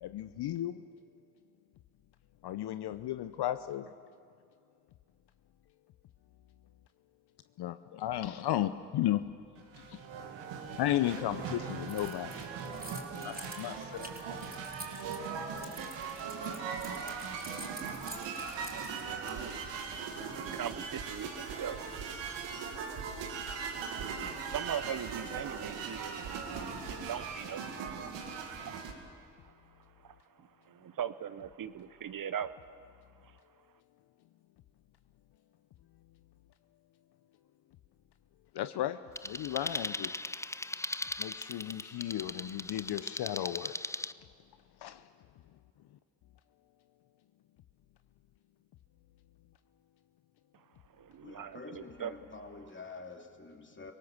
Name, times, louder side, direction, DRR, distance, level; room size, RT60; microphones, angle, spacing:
voice 1, 0.0-0.8 2.4-3.9 7.6-9.2 9.8-10.0 10.8-12.4 13.2-14.1 38.5-39.0 39.2-40.1 41.2-43.8 44.8-45.0, left 13 dB, 60° left, 12 dB, 0.7 m, -34 dB
sound 1, 9.6-28.9, right 5 dB, 75° right, 2.2 m, -39 dB
Keys jangling, 11.9-19.6, right 1 dB, 20° right, 4.6 m, -48 dB
voice 2, 18.8-28.7 29.1-29.5 30.0-32.5 33.2-33.4 50.5-50.6 51.0-52.1, right 9 dB, 50° right, 14 dB, 0.8 m, -42 dB
sound 2, 39.2-44.1, left 2 dB, 5° left, 0.5 m, -39 dB
voice 3, 51.2-53.9, left 3 dB, 25° left, 3 dB, 2.9 m, -47 dB
26.0 x 18.0 x 7.2 m, 2.2 s
hypercardioid pair, 45°, 44 cm